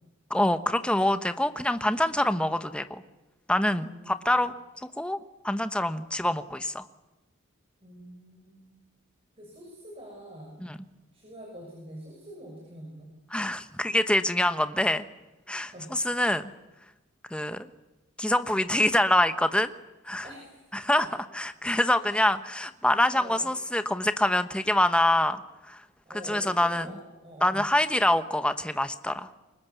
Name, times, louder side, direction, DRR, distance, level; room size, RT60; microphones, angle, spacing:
voice 1, 0.3-3.0 3.5-4.5 5.0-5.2 5.4-6.8 10.6-10.8 13.3-15.0 15.5-16.5 17.3-17.7 18.2-19.7 20.0-20.3 20.7-21.1 21.3-25.8 26.2-26.9 27.4-29.3, left 1 dB, 5° left, 10 dB, 1.0 m, -25 dB
voice 2, 3.7-4.4 7.8-8.7 9.4-10.6 11.1-13.1 15.7-15.9 20.2-20.7 21.0-21.1 22.0-22.3 23.1-23.4 26.0-26.9 27.2-27.7, right 1 dB, 25° right, -2 dB, 6.5 m, -45 dB
28.5 x 24.0 x 7.1 m, 1.1 s
head